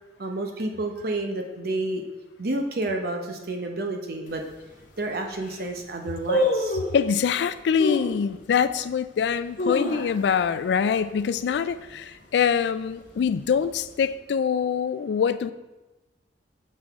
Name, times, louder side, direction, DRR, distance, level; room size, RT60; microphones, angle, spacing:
voice 1, 0.2-2.0 2.4-4.4 5.0-6.8, right 2 dB, 60° right, 4 dB, 0.8 m, -30 dB
sound 1, 4.3-4.4 5.0-5.1 5.3-5.7 6.3-7.0 7.8-8.2 8.7-8.8 9.3-10.5 10.8-10.9 11.2-11.6 12.0-12.3 12.9-13.7 14.0-14.1, left 1 dB, 50° left, 1.0 m, -26 dB
voice 2, 6.9-15.5, left 7 dB, 70° left, 13 dB, 0.3 m, -24 dB
6.3 x 5.7 x 3.5 m, 1.1 s
head